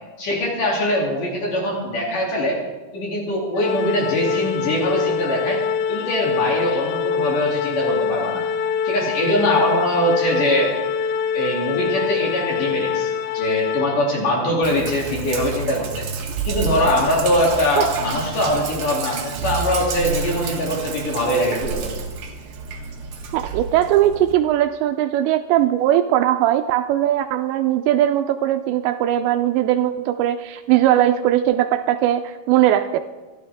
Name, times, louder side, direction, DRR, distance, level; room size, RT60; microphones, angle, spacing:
voice 1, 0.2-2.6 2.9-5.6 5.9-8.4 8.8-10.7 11.3-16.1 16.4-21.9, left 1 dB, 50° left, -2 dB, 4.0 m, -22 dB
Organ, 3.6-14.4, left 7 dB, 80° left, 2.1 m, -24 dB
Sink (filling or washing), 14.6-24.3, right 4 dB, 65° right, 1.8 m, -29 dB
voice 2, 23.3-33.0, right 12 dB, 80° right, 8 dB, 2.7 m, -19 dB
25.0 x 12.0 x 3.5 m, 1.2 s
omnidirectional pair, 5.3 m